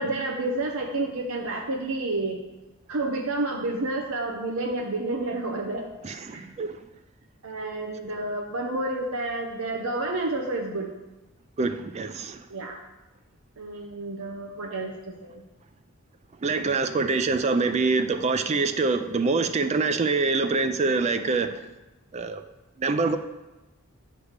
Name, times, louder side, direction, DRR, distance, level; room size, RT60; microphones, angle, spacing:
voice 1, 0.0-2.4 2.9-5.9 6.3-6.5 7.4-10.9 12.5-12.8 13.6-15.4, right 2 dB, 85° right, 1 dB, 0.7 m, -30 dB
voice 2, 6.0-6.8 11.6-12.5 16.4-21.6 22.1-22.4 22.8-23.2, right 3 dB, 30° right, 9 dB, 0.3 m, -25 dB
8.6 x 3.4 x 6.5 m, 1.1 s
head